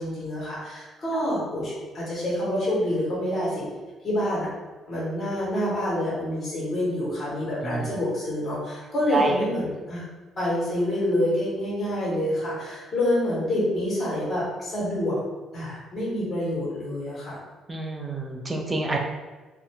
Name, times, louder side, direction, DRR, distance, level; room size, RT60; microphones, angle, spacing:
voice 1, 0.0-3.6 4.0-4.5 4.9-10.0 10.4-15.2 15.5-17.4, left 1 dB, 30° left, -8 dB, 1.2 m, -27 dB
voice 2, 9.1-9.4 17.7-19.0, right 2 dB, 20° right, 1 dB, 0.4 m, -27 dB
2.5 x 2.2 x 2.8 m, 1.3 s
cardioid pair, 135°, 0 cm